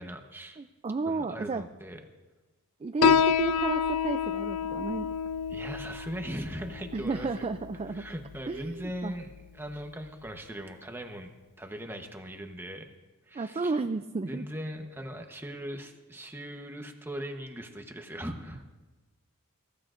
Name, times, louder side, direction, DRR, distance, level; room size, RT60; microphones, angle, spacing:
voice 1, 0.0-0.6 1.1-2.0 5.5-7.4 7.9-11.3 11.6-12.9 13.2-13.8 14.3-18.6, equal, 10° right, 4 dB, 1.0 m, -39 dB
voice 2, 0.6-1.6 2.8-5.1 6.9-8.0 8.5-9.2 13.3-14.4, right 3 dB, 25° right, 8 dB, 0.3 m, -32 dB
Piano, 3.0-10.1, left 7 dB, 75° left, 0.4 m, -29 dB
21.5 x 15.0 x 2.5 m, 1.2 s
head